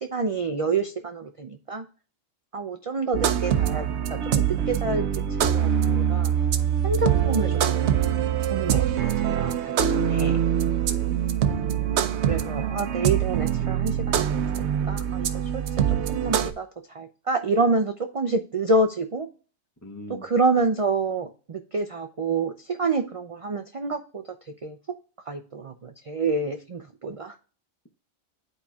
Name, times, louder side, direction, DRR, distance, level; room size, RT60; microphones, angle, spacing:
voice 1, 0.0-1.9 2.5-3.8 4.2-6.4 6.8-8.0 8.5-10.5 12.3-15.3 15.5-15.6 15.9-16.7 16.9-19.3 20.2-24.2 24.6-24.8 25.3-27.4, right 3 dB, 45° right, 6 dB, 0.4 m, -28 dB
sound 1, 3.1-16.5, right 9 dB, 70° right, 0.9 m, -24 dB
voice 2, 9.7-10.2 10.8-11.3 19.8-20.2, equal, 15° left, 2 dB, 0.7 m, -42 dB
11.5 x 4.3 x 2.3 m, 0.37 s
omnidirectional pair, 1.2 m